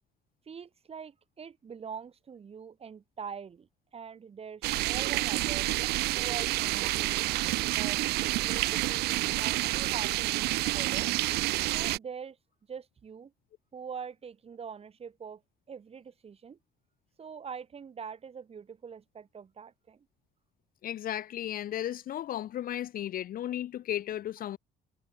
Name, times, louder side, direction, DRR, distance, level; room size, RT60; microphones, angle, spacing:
voice 1, 0.5-5.7 6.1-7.3 7.7-8.1 8.4-11.1 11.7-12.4 12.7-13.3 13.7-15.4 15.7-16.6 17.2-20.1, right 6 dB, 35° right, 3.4 m, -43 dB
sound 1, 4.6-12.0, right 19 dB, 75° right, 0.4 m, -29 dB
voice 2, 20.8-24.6, left 12 dB, 60° left, 1.3 m, -34 dB
cardioid pair, 110°, 17 cm